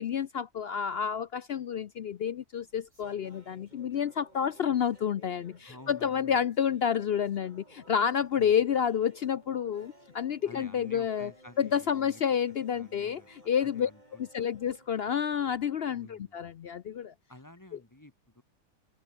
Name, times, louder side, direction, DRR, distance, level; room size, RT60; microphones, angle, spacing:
voice 1, 0.0-11.3 11.6-13.9 14.2-17.1, left 8 dB, 65° left, 0.6 m, -29 dB
sound 1, 2.4-15.8, right 1 dB, 25° right, 7.4 m, -59 dB
voice 2, 5.6-6.4 8.4-8.6 10.4-12.2 12.7-13.3 13.6-14.5 15.9-16.4 17.3-18.4, left 1 dB, 15° left, 1.0 m, -51 dB
omnidirectional pair, 1.6 m